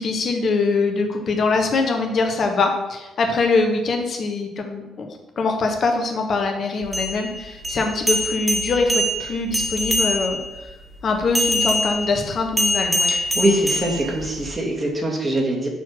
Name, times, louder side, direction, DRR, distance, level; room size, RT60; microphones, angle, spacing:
voice 1, 0.0-10.4 11.0-13.1, left 3 dB, 45° left, 4 dB, 1.2 m, -23 dB
sound 1, 6.8-10.5 11.3-14.5, left 1 dB, 10° right, 2.0 m, -24 dB
voice 2, 13.1-15.7, right 1 dB, 25° right, -1 dB, 2.0 m, -23 dB
6.4 x 4.4 x 6.2 m, 1.1 s
figure-of-eight pair, 45°, 0 cm